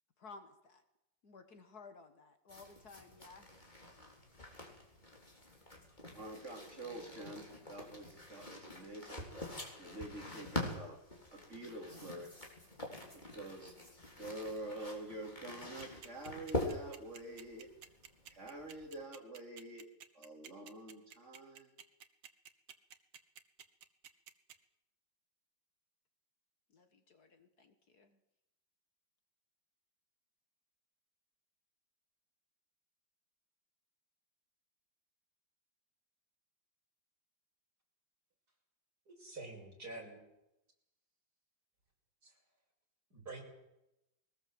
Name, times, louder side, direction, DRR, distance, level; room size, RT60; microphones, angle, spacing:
voice 1, 0.2-0.8 1.2-3.5 26.7-28.2, left 4 dB, 55° left, 9 dB, 1.9 m, -56 dB
sound 1, 2.5-19.0, left 1 dB, 20° left, 4.2 m, -45 dB
voice 2, 6.1-9.3 9.8-11.0 11.3-12.3 13.1-13.7 14.2-17.7 18.3-19.9 20.1-21.7, right 1 dB, 35° right, 0 dB, 4.5 m, -47 dB
sound 2, 15.6-24.6, right 8 dB, 80° right, 2.0 m, -53 dB
voice 3, 39.1-40.2 42.2-42.3 43.1-43.4, right 2 dB, 55° right, 0 dB, 6.7 m, -47 dB
21.5 x 19.5 x 7.8 m, 0.91 s
omnidirectional pair, 2.1 m